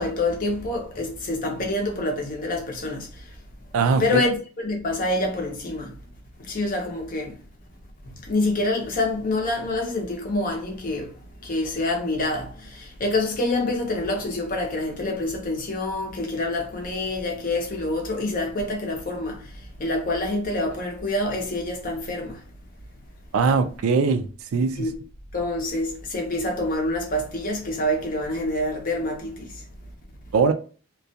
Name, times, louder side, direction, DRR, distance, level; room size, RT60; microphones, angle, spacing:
voice 1, 0.0-3.1 4.0-5.9 6.5-7.3 8.3-11.1 11.4-12.5 13.0-19.4 19.8-22.3 24.8-25.0 25.3-29.5, left 2 dB, 40° left, 0.7 m, -26 dB
voice 2, 3.7-4.2 23.3-24.3 24.5-24.9 30.3-30.5, right 5 dB, 75° right, 0.3 m, -21 dB
2.4 x 2.2 x 2.6 m
head